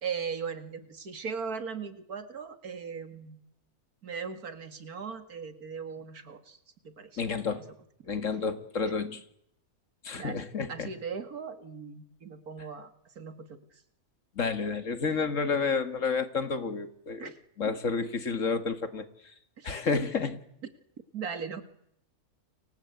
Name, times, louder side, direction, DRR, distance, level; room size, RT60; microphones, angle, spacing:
voice 1, 0.0-3.4 4.0-6.6 6.8-7.2 7.5-7.6 10.2-13.6 17.2-17.3 17.6-17.8 19.6-19.8 21.1-21.6, right 6 dB, 80° right, 10 dB, 2.5 m, -38 dB
voice 2, 7.2-7.6 8.0-9.2 10.0-10.9 14.4-19.1 19.6-20.4, left 5 dB, 55° left, 10 dB, 2.1 m, -30 dB
29.5 x 24.0 x 8.2 m, 0.76 s
omnidirectional pair, 1.6 m